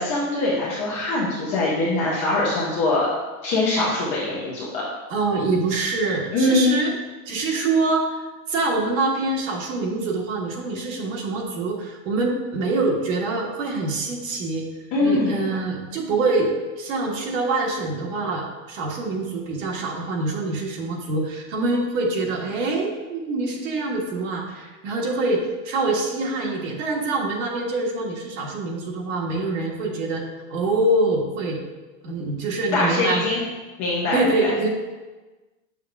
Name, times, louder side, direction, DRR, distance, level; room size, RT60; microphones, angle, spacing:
voice 1, 0.0-3.1 3.4-4.8 6.3-6.8 14.9-15.4 32.7-33.4 33.8-34.5, left 2 dB, 15° left, -6 dB, 0.4 m, -22 dB
voice 2, 5.1-6.9 7.2-14.6 15.0-30.2 30.5-31.6 32.0-33.2 34.1-34.7, right 2 dB, 60° right, -1 dB, 1.5 m, -25 dB
7.5 x 6.6 x 2.4 m, 1.2 s
supercardioid pair, 175°, 43 cm